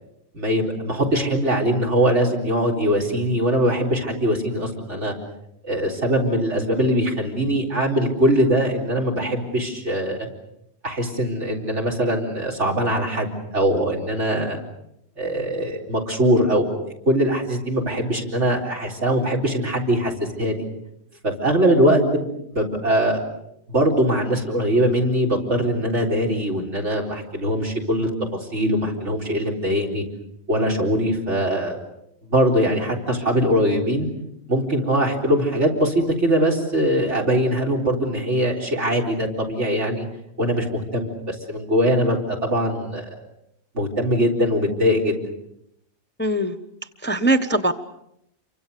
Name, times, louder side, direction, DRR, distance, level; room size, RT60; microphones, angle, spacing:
voice 1, 0.3-5.1 5.6-10.3 10.8-13.3 13.5-14.6 15.2-20.1 20.4-20.6 21.2-23.2 23.7-30.0 30.5-31.8 32.2-34.1 34.5-40.0 40.4-43.0 43.7-45.2, equal, 70° right, 0 dB, 4.5 m, -22 dB
voice 2, 46.2-46.6 47.0-47.7, right 1 dB, 10° left, 8 dB, 0.9 m, -21 dB
28.0 x 24.5 x 6.8 m, 0.79 s
omnidirectional pair, 1.2 m